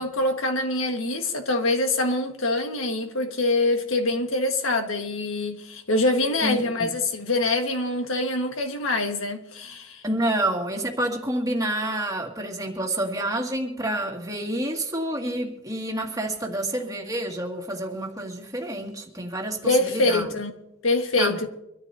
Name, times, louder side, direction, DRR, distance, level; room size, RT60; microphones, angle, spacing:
voice 1, 0.0-10.0 19.6-20.5 20.8-21.5, left 2 dB, 80° left, 1.6 m, -25 dB
voice 2, 6.4-6.9 10.0-20.2 21.2-21.5, right 1 dB, 15° right, 2.2 m, -28 dB
24.5 x 13.5 x 2.8 m
head